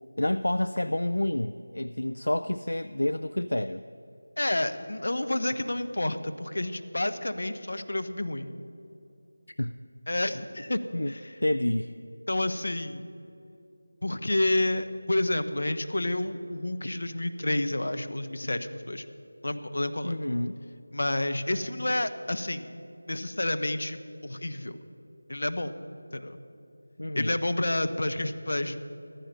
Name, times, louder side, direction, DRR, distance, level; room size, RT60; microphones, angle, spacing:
voice 1, 0.2-3.8 9.6-9.7 10.9-11.1 11.4-11.9 20.0-20.6 27.0-27.4, left 1 dB, 85° left, 12 dB, 0.4 m, -28 dB
voice 2, 4.4-8.5 10.1-10.8 11.1-11.4 12.3-13.1 14.0-19.0 19.4-20.2 20.9-22.7 23.1-24.8 25.3-25.7 26.1-26.4 27.1-28.8, left 1 dB, 70° left, 9 dB, 1.0 m, -29 dB
14.5 x 14.0 x 5.5 m, 2.8 s
figure-of-eight pair, 170°, 0 cm